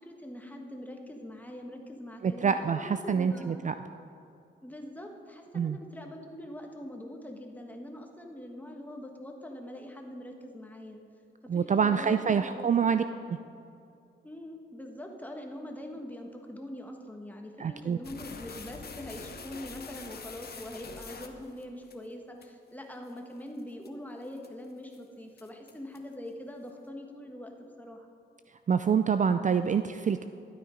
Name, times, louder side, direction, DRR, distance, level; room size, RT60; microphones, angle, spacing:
voice 1, 0.0-3.6 4.6-11.0 11.4-12.7 14.2-28.1, left 1 dB, 10° left, 2 dB, 1.5 m, -43 dB
voice 2, 2.2-3.7 5.5-5.8 11.5-13.0 17.6-18.0 28.7-30.2, right 6 dB, 40° right, 10 dB, 0.4 m, -26 dB
sound 1, 18.0-21.9 22.4-22.5 23.1-23.2 23.6-23.9 24.4-24.7 24.9-25.0 25.4-26.1, left 5 dB, 55° left, 1.0 m, -45 dB
12.5 x 9.1 x 5.1 m, 2.6 s
cardioid pair, 75°, 20 cm